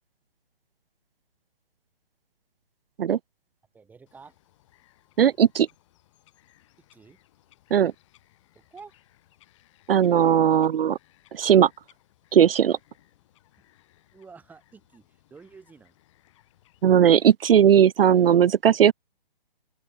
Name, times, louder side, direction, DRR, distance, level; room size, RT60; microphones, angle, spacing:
voice 1, 3.7-4.3 6.9-7.2 8.5-9.0 14.1-15.9, right 5 dB, 5° right, 3.3 m, -49 dB
Bird vocalization bird call bird song, 4.1-17.3, left 15 dB, 30° left, 7.3 m, -62 dB
voice 2, 5.2-5.7 7.7-7.9 9.9-11.0 11.3-11.7 12.3-12.8 16.8-18.9, right 9 dB, 75° right, 0.5 m, -18 dB
open air
hypercardioid pair, 155°, 29 cm